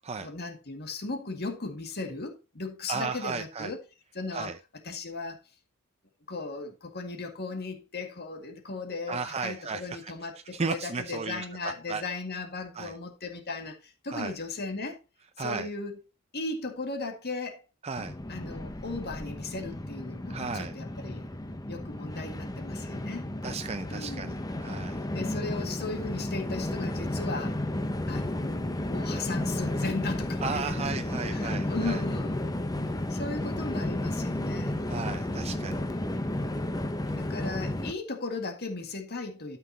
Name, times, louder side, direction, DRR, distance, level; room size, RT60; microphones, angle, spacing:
voice 1, 0.2-3.8 4.1-4.5 4.8-5.4 6.3-15.0 15.4-16.0 16.3-17.6 18.3-21.3 21.7-23.3 23.9-24.3 25.1-27.6 28.1-30.9 31.3-32.4 33.1-34.7 35.5-36.2 37.1-39.6, left 3 dB, 50° left, 2.0 m, -37 dB
voice 2, 2.9-3.7 4.3-4.6 9.1-10.1 10.5-12.0 12.7-12.9 14.1-14.3 15.4-15.7 17.8-18.2 20.3-20.7 23.4-25.1 30.4-32.0 34.9-35.9, right 4 dB, 30° right, 0.6 m, -34 dB
Train, 18.0-37.9, left 1 dB, 15° left, 0.8 m, -33 dB
13.0 x 5.8 x 2.9 m
head